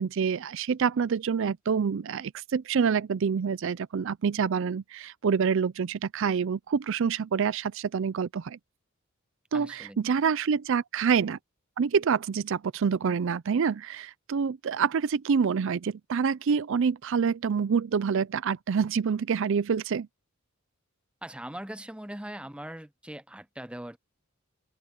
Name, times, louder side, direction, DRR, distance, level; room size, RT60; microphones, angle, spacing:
voice 1, 0.0-8.6 9.5-11.4 11.8-20.1, right 6 dB, 60° right, 0.4 m, -27 dB
voice 2, 9.5-10.0 21.2-24.0, right 1 dB, 5° right, 0.7 m, -41 dB
open air
head